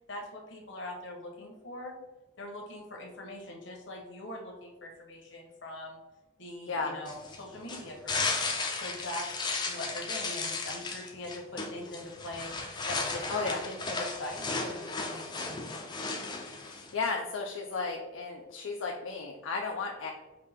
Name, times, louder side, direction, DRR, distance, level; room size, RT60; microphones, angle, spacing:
voice 1, 0.1-2.0 2.4-6.0 6.4-8.4 8.7-12.5 12.9-15.9, left 1 dB, 70° left, 0 dB, 1.1 m, -42 dB
sound 1, 7.1-16.9, left 3 dB, 25° left, 0.5 m, -35 dB
voice 2, 13.3-13.6 16.5-20.1, left 4 dB, 85° left, 0 dB, 0.5 m, -34 dB
5.0 x 2.7 x 3.5 m, 1.2 s
head